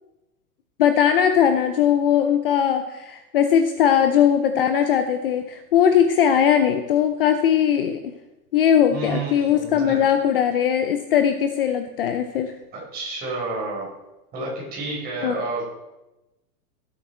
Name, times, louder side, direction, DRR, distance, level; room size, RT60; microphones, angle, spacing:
voice 1, 0.8-8.0 8.5-12.6 15.2-15.3, left 9 dB, 40° left, 8 dB, 0.6 m, -19 dB
voice 2, 8.9-10.0 12.7-13.9 14.3-15.6, right 2 dB, 20° right, -5 dB, 4.7 m, -30 dB
15.5 x 8.4 x 4.4 m, 0.99 s
supercardioid pair, 170°, 46 cm